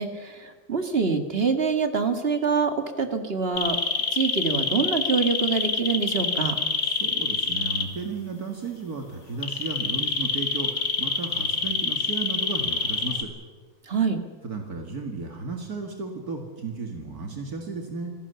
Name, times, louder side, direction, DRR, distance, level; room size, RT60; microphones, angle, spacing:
voice 1, 0.0-3.8 4.1-6.6 13.9-14.2, right 5 dB, 40° right, 7 dB, 2.2 m, -25 dB
sound 1, 3.6-7.8 9.4-13.2, left 4 dB, 80° left, 2.5 m, -26 dB
voice 2, 6.8-13.3 14.4-18.1, right 4 dB, 70° right, 3 dB, 2.6 m, -34 dB
26.0 x 17.5 x 7.0 m, 1.4 s
omnidirectional pair, 1.7 m